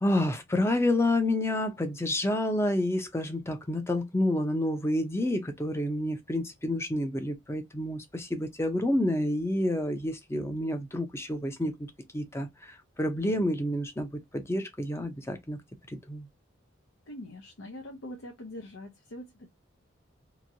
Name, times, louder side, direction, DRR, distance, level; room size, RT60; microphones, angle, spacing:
voice 1, 0.0-15.6 15.9-16.3, left 1 dB, 15° left, 0.5 m, -29 dB
voice 2, 17.1-19.5, left 1 dB, 80° left, 0.7 m, -43 dB
3.0 x 2.6 x 2.6 m
head